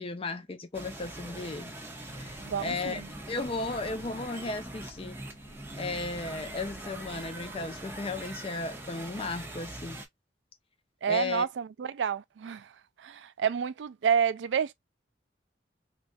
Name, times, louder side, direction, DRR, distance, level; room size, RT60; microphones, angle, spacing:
voice 1, 0.0-5.2 5.8-10.0 11.1-11.5, left 3 dB, 30° left, 0.5 m, -35 dB
sound 1, 0.7-10.1, right 2 dB, 15° right, 0.6 m, -42 dB
sound 2, 2.1-7.6, left 1 dB, 90° left, 0.9 m, -55 dB
voice 2, 2.4-3.1 11.0-12.7 13.0-14.7, right 7 dB, 90° right, 0.4 m, -29 dB
3.2 x 2.4 x 2.4 m
head